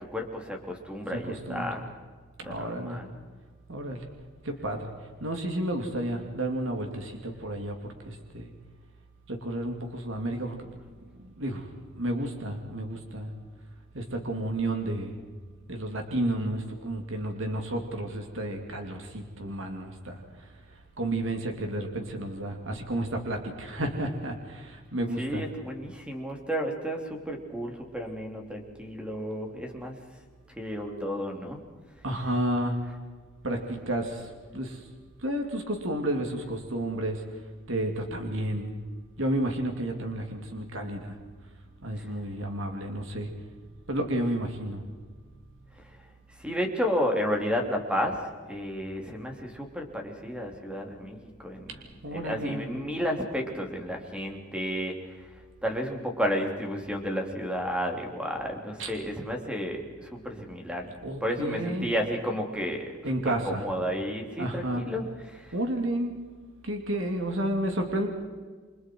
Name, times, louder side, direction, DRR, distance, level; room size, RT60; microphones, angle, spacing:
voice 1, 0.1-1.8 2.4-3.1 25.2-29.9 30.6-31.6 46.4-48.2 48.5-51.2 51.4-51.7 52.1-54.9 55.6-60.9 61.2-62.9 63.2-65.5, equal, 5° right, 2 dB, 3.4 m, -32 dB
voice 2, 1.1-1.7 2.4-3.0 3.7-4.0 4.4-4.9 5.2-8.5 9.3-10.6 11.2-13.3 13.9-15.1 15.7-20.2 21.0-25.4 28.1-28.2 32.0-32.8 33.4-34.8 35.2-37.2 37.7-38.7 39.2-41.1 41.8-43.3 43.9-44.8 51.7-52.6 58.8-58.9 61.0-61.9 63.0-63.6 64.4-64.8 65.5-66.1 66.6-68.1, right 1 dB, 70° right, 3 dB, 3.0 m, -31 dB
29.5 x 24.5 x 4.8 m, 1.5 s
head